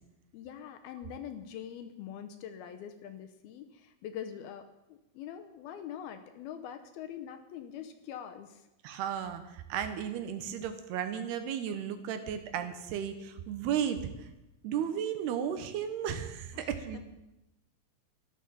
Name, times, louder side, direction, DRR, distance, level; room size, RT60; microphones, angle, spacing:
voice 1, 0.3-8.6 16.5-17.0, left 9 dB, 75° left, 8 dB, 2.5 m, -44 dB
voice 2, 8.8-14.3 14.6-17.0, right 9 dB, 75° right, 9 dB, 3.0 m, -34 dB
14.0 x 12.0 x 7.1 m, 0.94 s
omnidirectional pair, 4.9 m